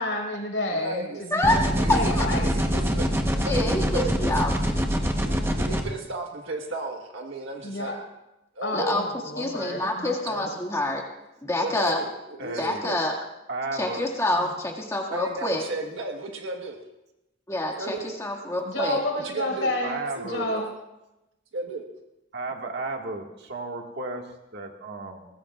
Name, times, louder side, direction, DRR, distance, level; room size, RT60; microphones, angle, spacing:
voice 1, 0.0-2.5 7.6-8.0 8.6-10.5 14.3-14.5 18.6-20.7, left 1 dB, 75° left, 1 dB, 4.3 m, -30 dB
voice 2, 0.7-1.2 1.8-2.1 2.4-3.0 3.3-4.3 5.2-8.0 8.5-9.0 11.6-13.0 15.1-16.8 17.8-18.1 18.8-18.9 19.2-19.7 20.2-20.6 21.5-21.8, right 2 dB, 85° right, 2 dB, 1.4 m, -34 dB
voice 3, 1.3-1.6 1.9-2.3 3.3-4.5 8.7-9.0 9.4-11.1 11.4-12.0 12.6-13.2 13.8-15.7 17.5-19.0, left 1 dB, 15° left, 0 dB, 2.0 m, -27 dB
sound 1, 1.4-5.8, equal, 10° right, 1.0 m, -24 dB
voice 4, 12.4-12.8 13.5-14.1 19.8-20.5 22.3-25.3, right 2 dB, 55° right, 2 dB, 1.9 m, -34 dB
23.0 x 19.0 x 2.5 m, 0.96 s
head